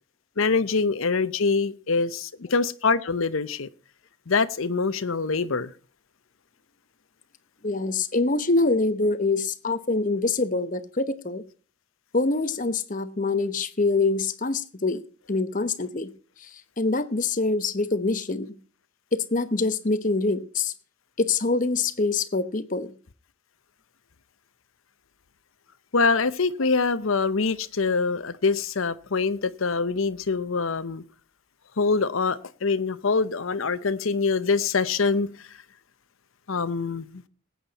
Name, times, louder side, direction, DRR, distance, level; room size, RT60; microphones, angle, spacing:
voice 1, 0.4-3.7 4.3-5.7 25.9-31.0 31.8-35.3 36.5-37.2, left 4 dB, 75° left, 0.8 m, -24 dB
voice 2, 7.6-11.4 12.1-15.0 15.3-16.1 16.4-16.5 16.8-18.6 19.1-20.7 21.2-22.9, left 3 dB, 40° left, 0.9 m, -25 dB
19.0 x 8.7 x 4.1 m
head